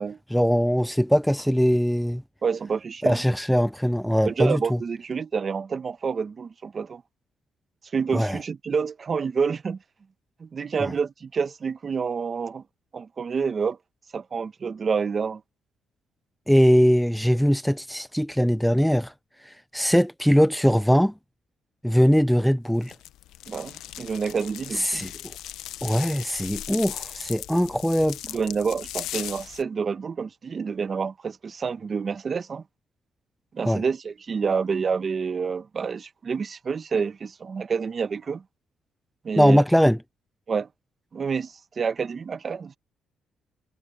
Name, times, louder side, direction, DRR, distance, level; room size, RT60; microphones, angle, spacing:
voice 1, 0.3-2.2 3.0-4.6 8.1-8.4 10.8-10.9 16.5-19.1 19.5-21.1 21.8-22.9 24.8-25.1 25.8-28.2 33.7-33.8 39.4-40.0, equal, ahead, 0.4 m, -21 dB
voice 2, 2.4-3.2 4.2-7.0 7.9-9.8 10.4-12.6 12.9-13.8 14.1-15.4 23.5-25.1 28.3-32.6 33.5-38.4 39.2-39.6 40.5-40.7 41.1-42.8, right 5 dB, 40° right, 1.5 m, -28 dB
sound 1, 22.8-29.6, left 13 dB, 85° left, 0.7 m, -38 dB
cardioid pair, 90°, 0 cm